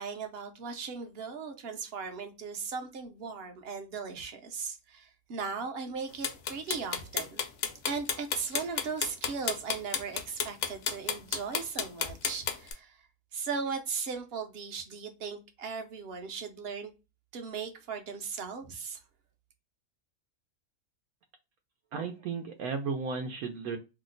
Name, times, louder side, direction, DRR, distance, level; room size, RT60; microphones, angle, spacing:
voice 1, 0.0-7.4 7.9-13.0 13.3-16.9 17.3-19.0, right 5 dB, 55° right, 6 dB, 0.7 m, -37 dB
sound 1, 6.2-12.7, left 7 dB, 65° left, 0.9 m, -31 dB
voice 2, 21.9-23.8, right 5 dB, 85° right, 3 dB, 1.0 m, -34 dB
2.9 x 2.0 x 3.7 m, 0.27 s
omnidirectional pair, 1.5 m